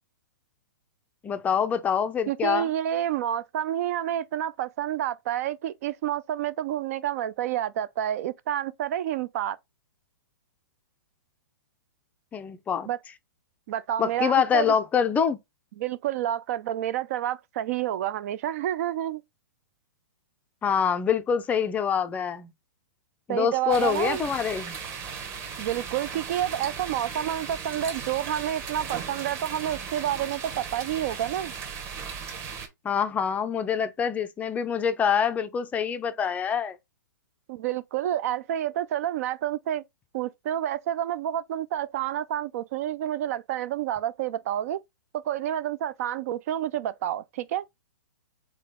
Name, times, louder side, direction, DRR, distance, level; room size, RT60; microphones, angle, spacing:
voice 1, 1.2-2.7 12.3-12.9 14.0-15.4 20.6-22.5 23.3-24.8 32.8-36.8, left 7 dB, 15° left, 0.4 m, -25 dB
voice 2, 2.3-9.6 12.9-13.0 13.7-14.7 15.8-19.2 23.3-24.2 25.6-31.5 37.5-39.8 40.1-44.8 45.1-47.7, right 11 dB, 50° right, 0.4 m, -29 dB
sound 1, 23.7-32.7, right 6 dB, 25° right, 1.2 m, -37 dB
3.8 x 3.8 x 3.6 m
hypercardioid pair, 135°, 11 cm